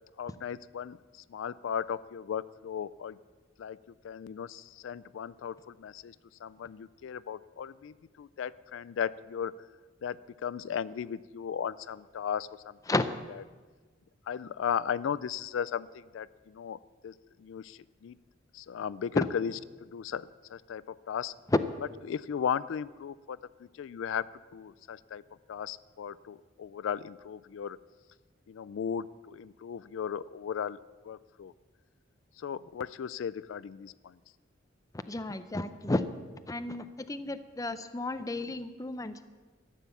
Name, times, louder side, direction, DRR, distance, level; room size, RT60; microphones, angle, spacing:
voice 1, 0.2-3.2 3.6-3.8 4.0-6.2 6.4-9.5 10.0-12.8 14.3-16.8 17.0-17.1 17.4-18.2 18.5-19.5 19.8-21.3 22.1-23.4 23.7-25.2 25.5-27.8 28.5-30.8 31.0-31.5 32.4-34.2, left 8 dB, 80° left, 17 dB, 0.3 m, -36 dB
voice 2, 35.1-36.1 36.5-39.2, left 2 dB, 20° left, 11 dB, 0.6 m, -32 dB
13.5 x 9.1 x 7.0 m, 1.4 s
head